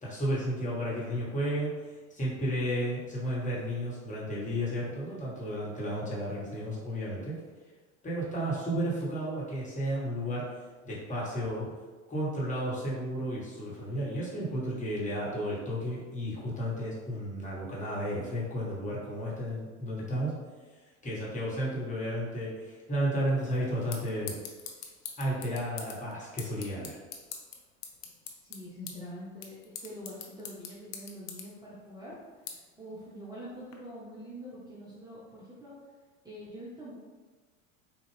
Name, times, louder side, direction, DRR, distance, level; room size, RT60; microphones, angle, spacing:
voice 1, 0.0-7.4 8.0-10.4 10.8-11.7 12.1-20.3 21.0-24.4 25.2-27.0, equal, 20° left, -6 dB, 1.5 m, -33 dB
sound 1, 23.3-33.8, left 7 dB, 45° left, 0.7 m, -46 dB
voice 2, 28.4-29.6 29.8-32.1 32.5-35.8 36.2-36.9, equal, 10° right, -9 dB, 0.9 m, -45 dB
4.1 x 2.5 x 3.3 m, 1.4 s
hypercardioid pair, 85°, 40 cm